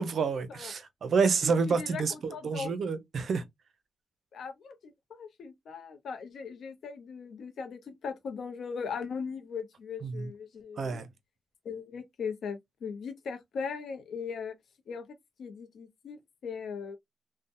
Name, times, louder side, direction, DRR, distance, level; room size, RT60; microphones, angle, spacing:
voice 1, 0.0-3.4 10.0-10.3 10.8-11.1, right 5 dB, 70° right, 0.5 m, -29 dB
voice 2, 1.4-2.7 4.3-11.0 11.6-14.5 14.9-15.1 15.4-17.0, left 5 dB, 75° left, 0.6 m, -39 dB
2.7 x 2.1 x 2.5 m
supercardioid pair, 50°, 0 cm